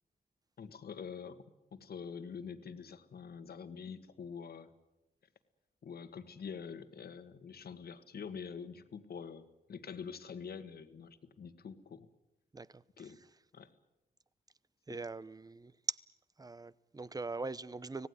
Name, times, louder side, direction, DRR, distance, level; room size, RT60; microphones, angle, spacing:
voice 1, 0.6-1.4 1.7-4.7 5.8-12.1 13.0-13.2 13.5-13.7, left 6 dB, 75° left, 1.8 m, -46 dB
voice 2, 12.5-13.1 14.9-16.0 16.4-18.1, right 3 dB, 25° right, 0.8 m, -41 dB
25.5 x 18.0 x 9.7 m
wide cardioid pair, 115°, 16 cm